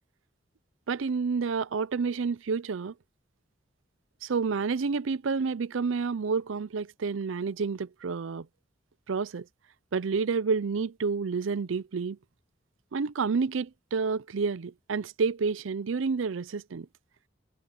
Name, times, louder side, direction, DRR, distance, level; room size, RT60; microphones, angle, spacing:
voice 1, 0.9-2.9 4.2-8.5 9.1-9.5 9.9-12.2 12.9-16.9, right 5 dB, 90° right, 0.5 m, -29 dB
head